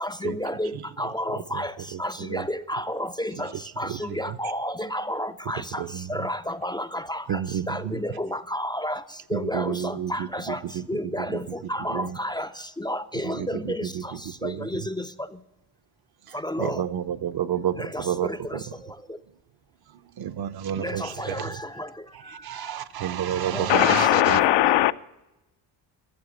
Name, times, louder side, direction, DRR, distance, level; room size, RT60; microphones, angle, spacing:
voice 1, 0.0-0.7 1.0-1.7 2.0-3.5 3.8-5.8 6.1-7.2 7.7-9.0 9.3-10.6 10.9-11.4 11.7-12.5 12.8-13.9 14.4-14.8 16.4-16.8 17.9-18.6 20.8-21.5 23.5-23.9, left 1 dB, 10° left, 0.3 m, -30 dB
voice 2, 1.3-2.5 3.4-3.5 3.8-4.4 5.5-6.3 7.3-8.0 9.3-11.6 11.9-12.2 13.2-14.9 16.3-18.7 19.9-21.6 22.1-24.4, right 9 dB, 55° right, 0.7 m, -31 dB
voice 3, 23.7-24.9, left 14 dB, 70° left, 0.6 m, -19 dB
13.0 x 7.2 x 8.3 m
cardioid pair, 95°, 46 cm